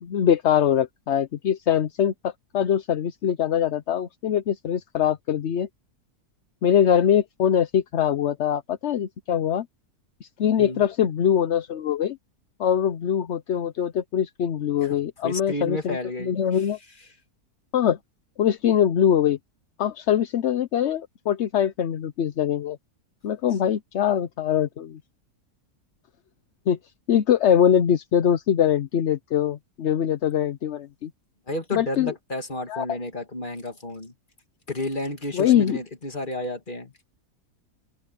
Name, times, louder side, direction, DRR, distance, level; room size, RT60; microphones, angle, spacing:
voice 1, 0.0-5.7 6.6-9.7 10.2-12.2 12.6-16.8 17.7-18.0 18.4-19.4 19.8-22.8 23.2-25.0 26.7-26.8 27.1-31.1 31.7-32.1 32.7-32.8 35.3-35.8, left 9 dB, 55° left, 0.9 m, -23 dB
voice 2, 15.2-16.7 31.5-34.1 34.7-36.9, left 2 dB, 30° left, 2.5 m, -32 dB
omnidirectional pair, 1.7 m